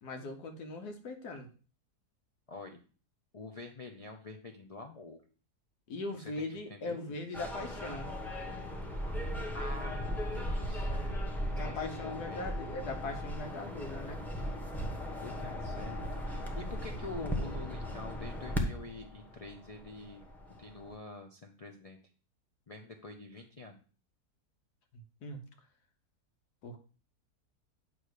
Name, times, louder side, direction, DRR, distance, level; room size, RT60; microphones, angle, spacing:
voice 1, 0.0-1.5 5.9-8.1 11.6-14.2 25.2-25.4 26.6-26.8, left 2 dB, 80° left, 6 dB, 1.7 m, -40 dB
voice 2, 2.5-2.8 3.3-5.2 6.1-7.2 9.5-11.4 11.6-12.5 15.0-20.2 20.6-22.0 22.7-23.8, left 3 dB, 55° left, 3 dB, 0.4 m, -46 dB
sound 1, 7.3-20.9, equal, ahead, 0.8 m, -37 dB
8.8 x 3.1 x 6.4 m, 0.37 s
omnidirectional pair, 1.7 m